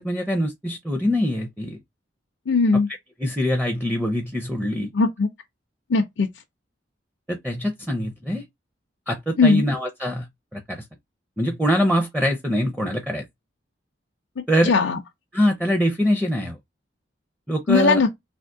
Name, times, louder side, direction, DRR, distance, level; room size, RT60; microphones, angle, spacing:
voice 1, 0.0-1.8 3.2-4.9 7.3-8.4 9.1-10.3 10.5-10.8 11.4-13.3 14.5-14.7 15.3-16.6 17.5-18.0, equal, 5° right, 0.5 m, -23 dB
voice 2, 2.5-2.9 4.9-5.3 5.9-6.3 9.4-9.7 14.6-15.0 17.7-18.1, left 4 dB, 85° left, 0.5 m, -18 dB
3.5 x 2.4 x 2.5 m
head